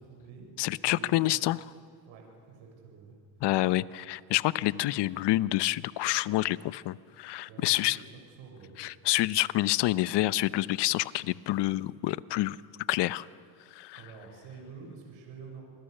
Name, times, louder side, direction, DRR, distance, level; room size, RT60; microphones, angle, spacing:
voice 1, 0.0-1.2 2.0-3.1 7.5-8.8 13.9-15.6, right 5 dB, 70° right, 1 dB, 7.1 m, -48 dB
voice 2, 0.6-1.6 3.4-8.0 8.8-12.6 12.9-13.2 13.7-14.0, left 16 dB, 55° left, 17 dB, 0.9 m, -28 dB
29.0 x 22.0 x 6.7 m, 2.1 s
supercardioid pair, 85°, 49 cm